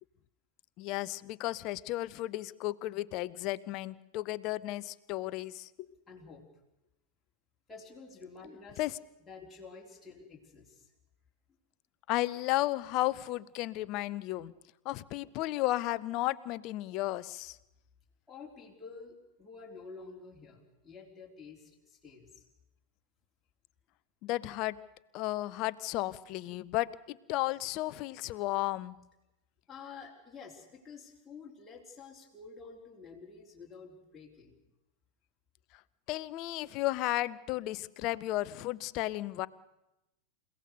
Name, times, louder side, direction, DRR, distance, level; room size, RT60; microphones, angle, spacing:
voice 1, 0.8-5.9 8.8-8.9 12.1-14.5 14.8-17.6 24.2-24.8 25.1-29.0 36.1-39.5, left 17 dB, 40° left, 18 dB, 0.8 m, -33 dB
voice 2, 6.1-6.5 7.7-8.9 9.2-10.9 18.3-22.5 29.7-34.6, left 4 dB, 15° left, -3 dB, 4.0 m, -50 dB
29.0 x 17.0 x 6.6 m, 0.94 s
figure-of-eight pair, 90°, 0 cm